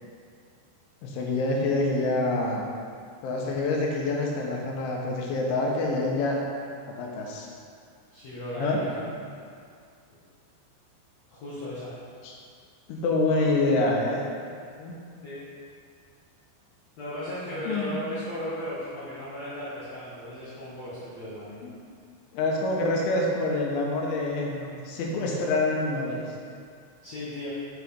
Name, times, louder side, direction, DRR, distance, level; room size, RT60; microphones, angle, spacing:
voice 1, 1.0-2.7 3.2-6.4 6.9-7.5 8.6-8.8 12.2-12.3 12.9-14.2 14.8-14.9 17.7-18.0 22.3-26.2, left 2 dB, 85° left, -1 dB, 3.6 m, -26 dB
voice 2, 8.1-9.0 11.3-11.9 15.2-15.4 17.0-21.6 27.0-27.5, left 1 dB, 65° left, -10 dB, 1.7 m, -36 dB
9.3 x 4.9 x 5.3 m, 2.3 s
omnidirectional pair, 5.3 m